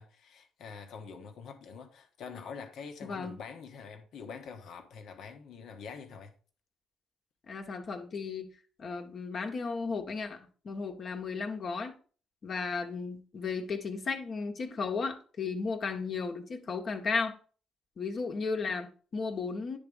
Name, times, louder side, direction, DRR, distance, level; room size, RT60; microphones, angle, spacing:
voice 1, 0.0-6.3, left 5 dB, 70° left, 1.3 m, -45 dB
voice 2, 3.0-3.3 7.5-8.5 8.8-12.0 12.4-17.4 18.0-19.8, left 4 dB, 55° left, 1.4 m, -34 dB
9.9 x 3.5 x 5.4 m
supercardioid pair, 60°, 0 cm